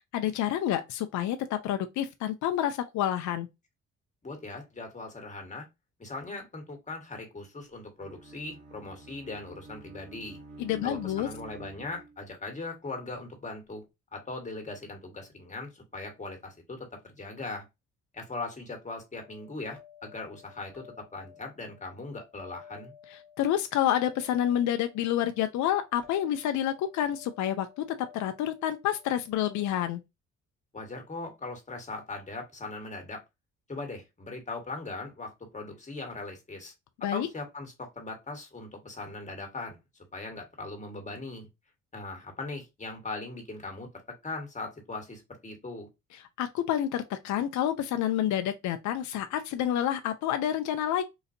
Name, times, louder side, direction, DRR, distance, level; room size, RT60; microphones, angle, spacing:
voice 1, 0.1-3.5 10.6-11.3 23.4-30.0 37.0-37.3 46.1-51.0, left 11 dB, 70° left, 0.5 m, -28 dB
voice 2, 4.2-5.6 6.0-10.4 10.8-13.8 14.1-17.6 18.1-22.9 30.7-33.2 33.7-36.7 37.1-39.8 40.1-41.5 41.9-43.9 44.2-45.9, left 3 dB, 25° left, 1.5 m, -39 dB
Bowed string instrument, 8.0-12.4, right 3 dB, 65° right, 1.9 m, -48 dB
sound 1, 19.2-29.7, left 8 dB, 5° left, 1.4 m, -55 dB
3.9 x 2.5 x 2.6 m
cardioid pair, 90°, 30 cm